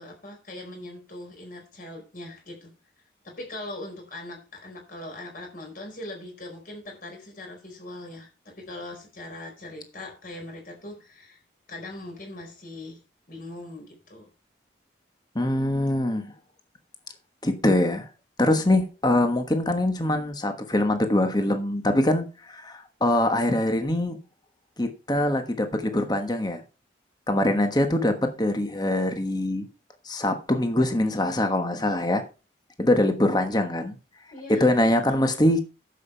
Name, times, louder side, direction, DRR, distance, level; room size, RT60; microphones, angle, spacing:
voice 1, 0.0-2.7 3.2-11.4 11.7-13.0 13.3-14.3 34.3-35.2, left 1 dB, 45° left, 4.6 m, -40 dB
voice 2, 15.3-16.3 17.4-18.1 18.4-24.2 24.8-26.6 27.3-29.6 30.0-32.2 32.8-33.9 34.6-35.6, left 1 dB, 20° left, 1.2 m, -23 dB
11.0 x 7.4 x 4.5 m
head